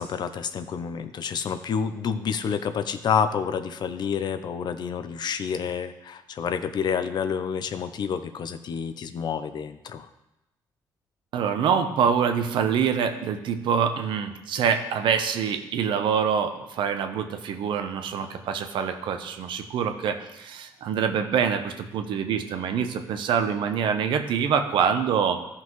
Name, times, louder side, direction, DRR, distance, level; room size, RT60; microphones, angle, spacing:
voice 1, 0.0-10.1, left 7 dB, 60° left, 10 dB, 0.6 m, -29 dB
voice 2, 11.3-25.4, right 7 dB, 80° right, 7 dB, 0.8 m, -25 dB
13.5 x 5.7 x 3.1 m, 0.94 s
cardioid pair, 80°, 8 cm